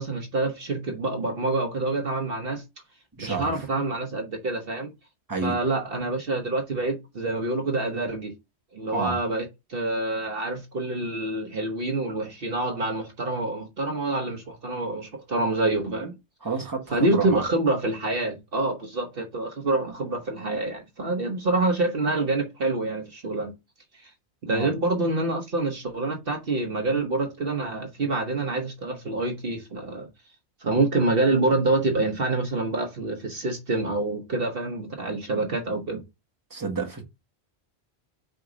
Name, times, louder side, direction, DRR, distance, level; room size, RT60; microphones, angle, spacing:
voice 1, 0.0-2.6 3.2-4.9 5.4-8.3 8.7-16.1 16.9-23.5 24.0-24.1 24.4-30.1 30.6-36.0, right 2 dB, 55° right, 1.2 m, -27 dB
voice 2, 3.2-3.6 5.3-5.6 8.9-9.2 16.4-17.4 24.5-24.7 36.5-37.0, right 4 dB, 20° right, 1.4 m, -30 dB
5.2 x 3.7 x 5.0 m
omnidirectional pair, 1.1 m